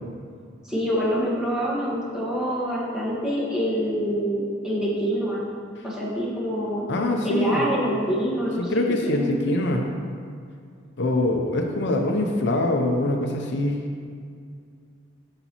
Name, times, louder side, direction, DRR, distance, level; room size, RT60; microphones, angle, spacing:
voice 1, 0.6-5.5 5.8-6.8 7.2-8.7 9.0-9.3, equal, 5° right, -7 dB, 1.5 m, -26 dB
voice 2, 6.9-7.7 8.6-9.8 11.0-13.8, left 2 dB, 65° left, 2 dB, 0.6 m, -24 dB
8.1 x 6.7 x 3.0 m, 2.2 s
head